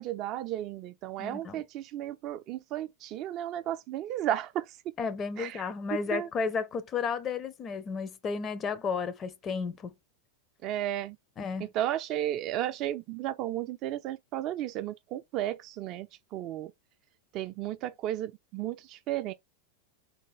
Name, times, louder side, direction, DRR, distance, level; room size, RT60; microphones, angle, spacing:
voice 1, 0.0-4.7 5.4-5.6 6.1-6.3 10.6-11.2 11.7-16.1 16.3-16.7 17.3-19.3, right 12 dB, 40° right, 0.3 m, -33 dB
voice 2, 1.2-1.6 5.0-9.9 11.4-11.7, left 5 dB, 25° left, 0.5 m, -33 dB
3.4 x 2.2 x 3.1 m
figure-of-eight pair, 90°, 0 cm